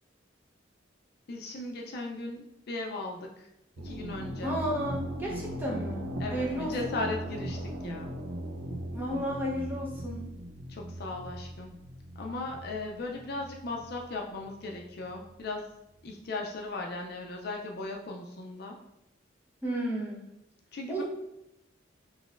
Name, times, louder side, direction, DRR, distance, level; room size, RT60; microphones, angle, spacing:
voice 1, 1.3-3.5 3.8-4.5 6.2-8.1 10.7-11.7 12.2-15.6 16.0-18.7 20.7-21.0, left 2 dB, 55° left, 1 dB, 0.4 m, -37 dB
sound 1, 3.8-15.3, equal, 85° right, 0.6 m, -39 dB
voice 2, 4.4-7.0 8.9-10.3 19.6-20.2 20.9-21.0, equal, 10° right, -4 dB, 0.8 m, -33 dB
3.9 x 3.0 x 2.5 m, 0.86 s
head